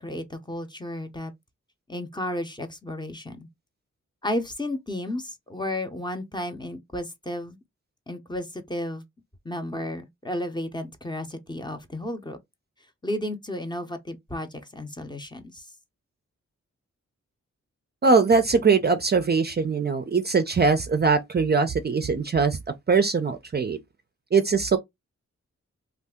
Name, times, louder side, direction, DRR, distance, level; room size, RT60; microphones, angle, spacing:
voice 1, 0.0-1.3 1.9-3.5 4.2-7.6 8.1-9.0 9.4-12.4 13.0-15.7, left 1 dB, 15° left, 0.6 m, -33 dB
voice 2, 18.0-22.6 22.9-23.8 24.3-24.8, right 4 dB, 35° right, 0.4 m, -21 dB
2.6 x 2.4 x 3.5 m
cardioid pair, 75°, 29 cm